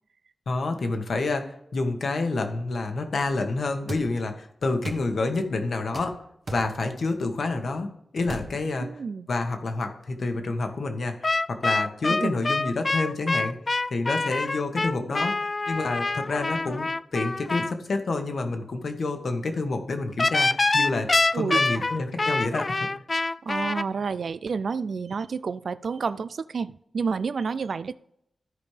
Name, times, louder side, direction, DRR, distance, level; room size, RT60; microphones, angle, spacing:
voice 1, 0.5-6.2 6.5-8.9 9.3-13.6 13.9-21.1 21.3-22.9, left 3 dB, 65° left, 6 dB, 1.4 m, -28 dB
sound 1, 3.9-4.1 4.8-5.1 5.9-6.1 6.5-6.7 8.3-8.5, right 2 dB, 45° right, 1.3 m, -34 dB
voice 2, 8.8-9.3 12.1-12.4 21.3-21.9 23.4-27.9, right 5 dB, 65° right, 15 dB, 0.3 m, -29 dB
sound 2, 11.2-17.7 20.2-23.8, left 3 dB, 35° left, 0.3 m, -25 dB
14.5 x 5.2 x 3.3 m, 0.75 s
wide cardioid pair, 115°, 0 cm